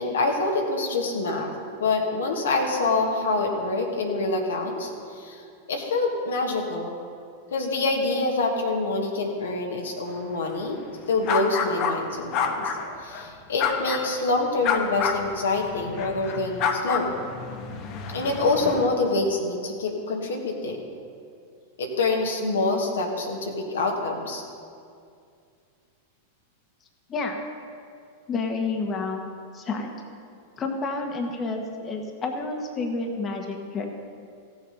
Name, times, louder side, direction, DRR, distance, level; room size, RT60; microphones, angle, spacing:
voice 1, 0.0-1.5 1.8-7.0 7.5-10.8 11.1-12.7 13.0-17.1 18.1-20.8 21.8-24.4, left 3 dB, 75° left, 1 dB, 1.5 m, -26 dB
sound 1, 11.2-11.9 12.3-13.2 13.6-14.2 14.6-18.9, left 6 dB, 45° left, 1.1 m, -28 dB
voice 2, 27.1-27.4 28.3-29.9 30.6-33.9, left 3 dB, 30° left, 3 dB, 1.3 m, -30 dB
15.5 x 7.2 x 5.3 m, 2.3 s
hypercardioid pair, 95°, 0 cm